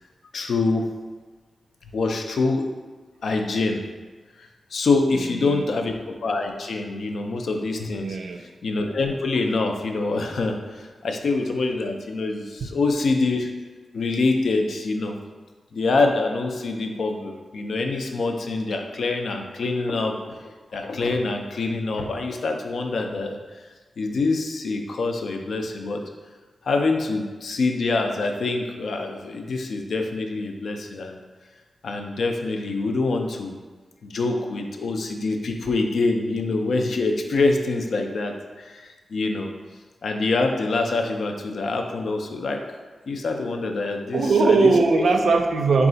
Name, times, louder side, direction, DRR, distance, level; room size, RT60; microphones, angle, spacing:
voice 1, 0.3-0.8 1.9-2.6 3.2-3.8 4.4-8.2 8.6-13.5 13.9-15.2 15.7-23.4 24.0-26.0 26.6-31.2 31.8-33.5 34.0-39.5 40.0-42.6 43.1-44.7, left 3 dB, 75° left, 4 dB, 0.4 m, -25 dB
voice 2, 5.1-5.7 8.0-8.4 12.6-12.7 44.1-45.9, right 4 dB, 80° right, 3 dB, 0.4 m, -20 dB
4.0 x 2.3 x 3.8 m, 1.3 s
wide cardioid pair, 105°, 0 cm